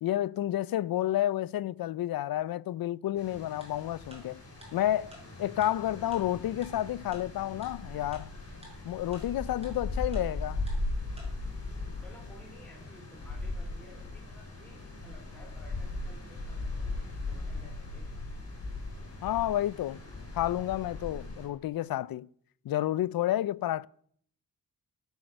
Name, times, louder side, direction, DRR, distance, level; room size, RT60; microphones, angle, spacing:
voice 1, 0.0-4.4 4.7-8.3 8.8-10.6 19.2-20.0 20.3-22.3 22.6-23.9, left 13 dB, 75° left, 0.5 m, -30 dB
sound 1, 3.2-21.5, left 2 dB, 40° left, 6.2 m, -39 dB
Tick-tock, 3.6-3.7 4.1-4.2 4.6-4.7 5.1-5.2 5.6-5.7 6.1-6.2 6.6-6.7 7.1-7.2 7.6-7.7 8.1-8.2 8.6-8.7 9.1-9.2 9.6-9.7 10.1-10.2 10.7-10.8 11.2-11.3, right 1 dB, 15° right, 5.9 m, -49 dB
voice 2, 12.0-17.0 17.3-18.1, left 2 dB, 5° left, 3.9 m, -55 dB
18.0 x 8.2 x 6.5 m
wide cardioid pair, 155°, 36 cm